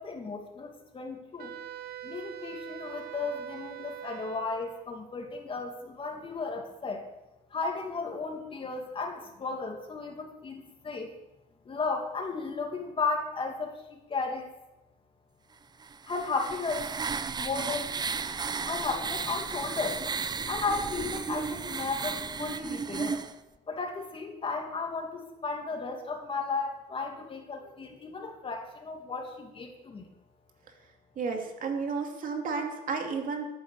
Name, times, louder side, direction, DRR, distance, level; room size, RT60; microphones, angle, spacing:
voice 1, 0.0-1.5 2.0-7.0 7.5-11.1 11.7-14.5 16.1-16.9 17.4-17.9 18.6-20.0 20.5-23.2 23.7-30.1, left 4 dB, 30° left, 3 dB, 2.5 m, -34 dB
Wind instrument woodwind instrument, 1.4-4.8, right 12 dB, 75° right, 1.1 m, -43 dB
sound 1, 15.8-23.3, right 5 dB, 25° right, 0.6 m, -34 dB
voice 2, 31.2-33.5, right 4 dB, 55° right, 3 dB, 2.5 m, -32 dB
13.0 x 9.2 x 6.8 m, 0.96 s
cardioid pair, 110°, 17 cm